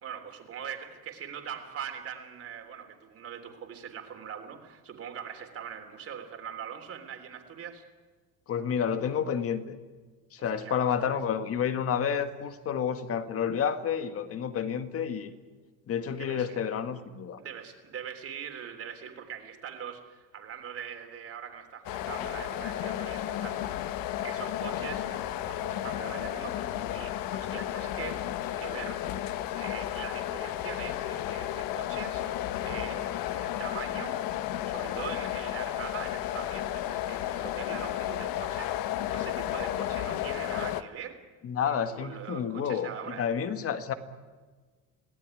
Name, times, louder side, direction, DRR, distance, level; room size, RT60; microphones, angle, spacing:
voice 1, 0.0-7.8 10.4-10.8 11.0-11.2 16.2-16.6 17.4-23.8 24.2-28.3 28.6-29.1 29.6-34.2 34.7-41.2 41.6-43.3, right 8 dB, 40° right, 4 dB, 3.4 m, -42 dB
voice 2, 8.5-9.8 10.3-15.3 15.9-17.4 41.4-43.9, left 7 dB, 40° left, 9 dB, 1.7 m, -30 dB
sound 1, 21.8-40.8, left 12 dB, 70° left, 1.3 m, -33 dB
26.0 x 17.5 x 9.9 m, 1.4 s
cardioid pair, 150°, 35 cm